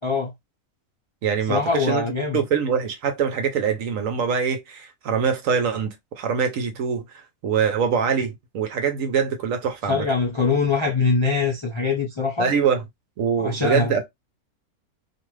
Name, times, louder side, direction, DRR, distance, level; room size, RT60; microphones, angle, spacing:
voice 1, 0.0-0.3 1.5-2.4 9.9-12.5 13.4-13.9, left 4 dB, 40° left, 0.4 m, -23 dB
voice 2, 1.2-2.0 2.3-10.1 12.4-12.8 13.2-14.1, right 6 dB, 70° right, 1.0 m, -24 dB
2.5 x 2.4 x 3.1 m
omnidirectional pair, 1.6 m